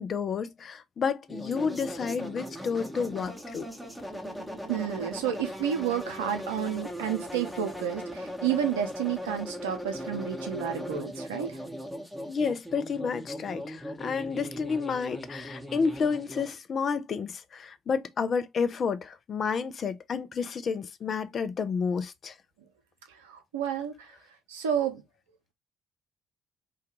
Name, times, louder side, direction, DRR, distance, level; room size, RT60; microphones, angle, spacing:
voice 1, 0.0-3.7 12.3-22.4, left 5 dB, 45° left, 0.4 m, -30 dB
sound 1, 1.3-16.6, equal, 5° right, 0.9 m, -39 dB
voice 2, 4.7-11.6 23.2-24.1 24.5-25.0, right 9 dB, 80° right, 0.5 m, -31 dB
2.3 x 2.2 x 2.9 m
hypercardioid pair, 50°, 0 cm